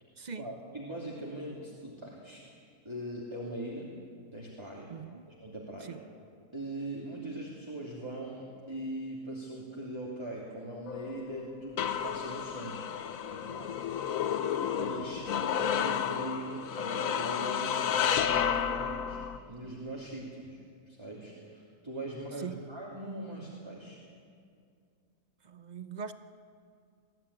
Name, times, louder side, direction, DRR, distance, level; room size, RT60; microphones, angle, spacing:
voice 1, 0.3-2.5 2.8-3.9 4.3-4.9 5.3-6.0 6.5-12.9 13.3-14.4 14.8-24.0, right 1 dB, 15° right, -4 dB, 2.8 m, -41 dB
voice 2, 4.9-5.3 5.9-6.0 22.4-22.6 25.4-26.1, right 6 dB, 50° right, 11 dB, 0.5 m, -41 dB
sound 1, 10.9-19.4, left 8 dB, 60° left, 1.2 m, -31 dB
21.0 x 15.5 x 9.9 m, 2.2 s
omnidirectional pair, 1.7 m